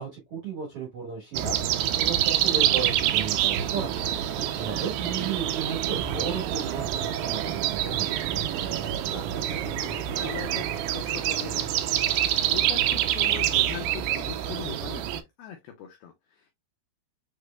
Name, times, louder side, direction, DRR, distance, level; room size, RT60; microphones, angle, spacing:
voice 1, 0.0-4.1 4.5-8.2, right 6 dB, 70° right, 1.4 m, -34 dB
sound 1, 1.3-15.2, right 11 dB, 85° right, 2.4 m, -26 dB
sound 2, 4.0-11.6, right 1 dB, 55° left, 2.1 m, -46 dB
voice 2, 4.8-5.3 9.1-9.3 9.8-11.7 12.0-16.5, left 9 dB, 90° left, 2.1 m, -41 dB
7.4 x 3.2 x 2.2 m
omnidirectional pair, 5.3 m